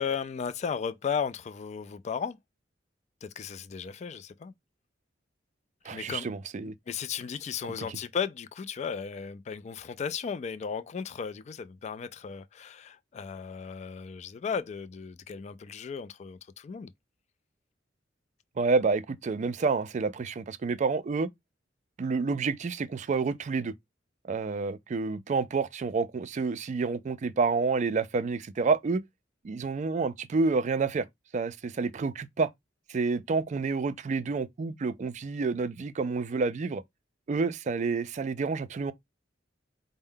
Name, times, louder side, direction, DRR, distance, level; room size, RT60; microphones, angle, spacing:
voice 1, 0.0-2.4 3.2-4.5 5.9-6.3 6.9-16.9, left 6 dB, 35° left, 0.3 m, -35 dB
voice 2, 5.9-6.7 18.6-21.3 22.0-23.7 24.3-29.0 29.4-31.1 31.3-32.5 32.9-36.8 37.3-38.9, right 4 dB, 40° right, 0.3 m, -29 dB
4.4 x 2.1 x 3.6 m
head